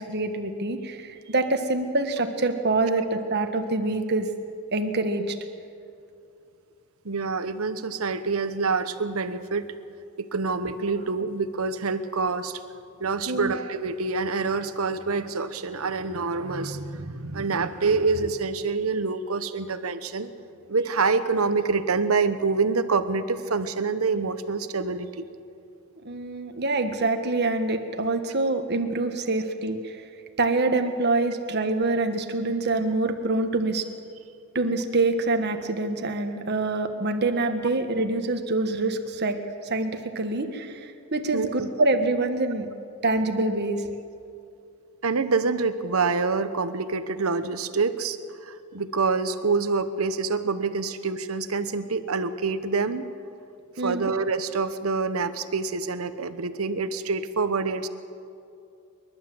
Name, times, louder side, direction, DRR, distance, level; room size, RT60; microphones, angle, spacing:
voice 1, 0.0-4.3 4.7-5.4 13.3-13.5 26.0-30.0 30.4-33.8 34.5-39.4 39.6-42.7 43.0-43.9 53.8-54.0, right 2 dB, 50° right, 6 dB, 1.5 m, -25 dB
voice 2, 7.0-9.7 10.2-12.6 13.0-20.3 20.7-25.3 41.3-41.7 45.0-53.1 53.8-57.9, right 4 dB, 80° right, 11 dB, 1.0 m, -26 dB
28.0 x 12.0 x 7.8 m, 2.5 s
head